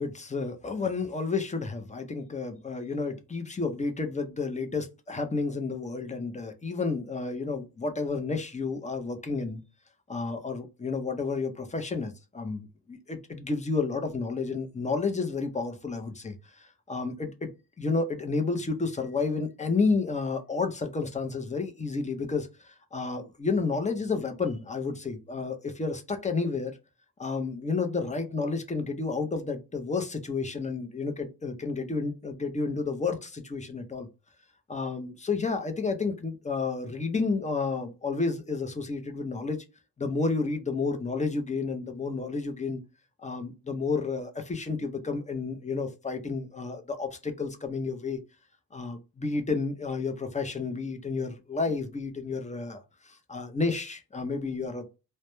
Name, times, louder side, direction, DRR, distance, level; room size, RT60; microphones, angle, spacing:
voice 1, 0.0-9.6 10.1-17.5 17.8-26.7 27.2-34.1 34.7-39.6 40.0-42.8 43.2-48.2 48.7-54.8, left 4 dB, 20° left, 0.4 m, -31 dB
2.1 x 2.1 x 2.9 m
cardioid pair, 95°, 41 cm